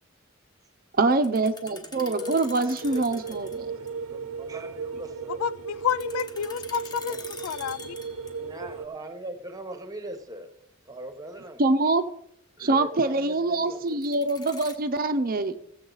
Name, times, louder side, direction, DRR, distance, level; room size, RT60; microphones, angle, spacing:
voice 1, 1.0-3.8 11.6-12.0 12.6-15.6, right 3 dB, 45° right, 0.6 m, -24 dB
sound 1, 1.1-3.6 3.9-4.0 5.9-8.5 13.9-14.8, left 2 dB, 20° left, 1.2 m, -44 dB
voice 2, 1.6-5.4 7.1-7.3 8.3-10.5 10.8-11.6 12.6-14.0, equal, 15° right, 1.1 m, -41 dB
sound 2, 2.8-8.9, right 5 dB, 85° right, 0.6 m, -36 dB
voice 3, 5.4-7.9, left 8 dB, 90° left, 0.3 m, -30 dB
15.5 x 7.7 x 4.0 m
head